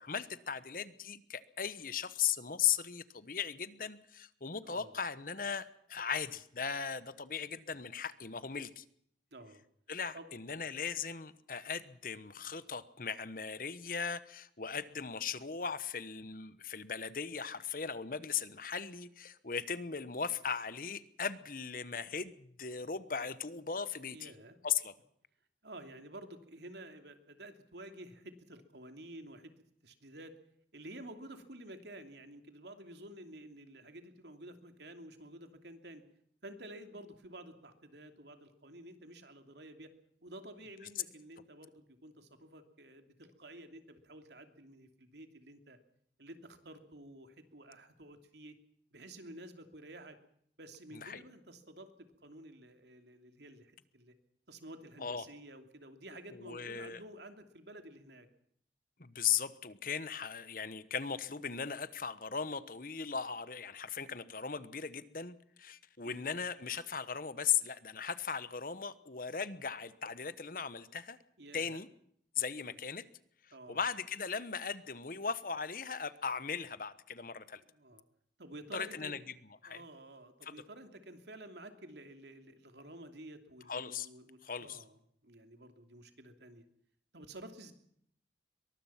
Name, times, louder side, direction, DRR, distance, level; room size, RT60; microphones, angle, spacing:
voice 1, 0.0-8.8 9.9-24.3 24.6-24.9 50.9-51.2 55.0-55.3 56.3-57.0 59.0-71.2 71.5-71.9 72.4-73.0 73.4-77.6 78.7-79.3 79.6-79.8 80.4-80.6 83.7-84.1 84.4-84.8, left 7 dB, 50° left, 15 dB, 1.1 m, -38 dB
voice 2, 9.3-9.6 10.1-10.2 24.1-24.6 25.6-29.5 29.8-30.3 30.7-36.0 36.4-39.9 40.2-45.8 46.2-48.5 48.9-50.2 50.6-54.1 54.5-58.3 66.0-66.3 71.4-71.8 72.6-72.8 73.5-73.8 77.7-78.0 78.4-79.1 79.7-86.6 87.1-87.7, right 1 dB, 70° right, 7 dB, 2.9 m, -51 dB
23.0 x 20.5 x 5.8 m, 0.67 s
head